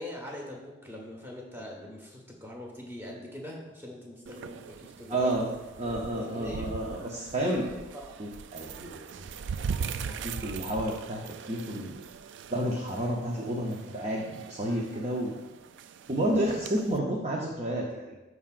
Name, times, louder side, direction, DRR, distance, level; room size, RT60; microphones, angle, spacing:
voice 1, 0.0-5.5 5.8-6.7 7.3-7.6 7.9-8.1, left 1 dB, 10° right, -1 dB, 1.2 m, -42 dB
sound 1, 4.3-17.0, right 6 dB, 65° right, 0.3 m, -41 dB
voice 2, 5.1-5.5 5.8-7.6 8.2-9.2 9.6-11.9 12.5-15.3 16.1-18.1, right 1 dB, 35° right, -1 dB, 0.7 m, -31 dB
13.0 x 4.8 x 2.5 m, 1.0 s
head